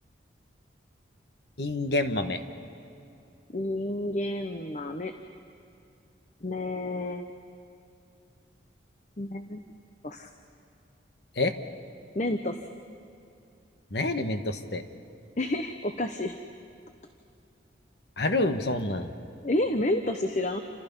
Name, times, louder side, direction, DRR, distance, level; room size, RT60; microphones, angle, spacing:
voice 1, 1.6-2.4 11.4-11.5 13.9-14.8 18.2-19.1, left 2 dB, 60° left, 8 dB, 1.4 m, -27 dB
voice 2, 3.5-5.1 6.4-7.2 9.2-9.6 10.0-10.3 12.1-12.7 15.4-16.4 19.4-20.6, left 1 dB, 40° left, 7 dB, 0.9 m, -30 dB
29.0 x 26.5 x 5.5 m, 2.6 s
head